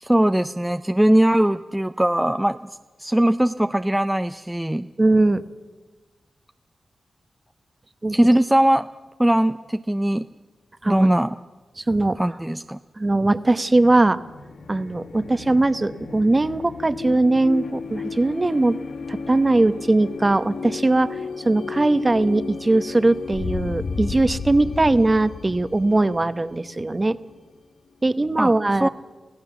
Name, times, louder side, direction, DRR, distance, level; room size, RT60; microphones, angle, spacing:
voice 1, 0.0-2.7 3.0-4.9 8.1-8.9 9.2-10.2 10.8-11.4 12.2-12.8 28.4-28.5 28.8-28.9, right 1 dB, 10° right, 9 dB, 0.5 m, -20 dB
voice 2, 5.0-5.4 8.0-8.2 10.8-11.1 11.8-12.2 13.0-14.2 14.7-18.8 19.1-21.2 21.4-27.2 28.0-28.9, right 2 dB, 30° right, 12 dB, 1.0 m, -20 dB
sound 1, 14.1-27.6, left 4 dB, 90° left, 1.5 m, -34 dB
25.0 x 16.5 x 7.2 m, 1.3 s
cardioid pair, 65°, 0 cm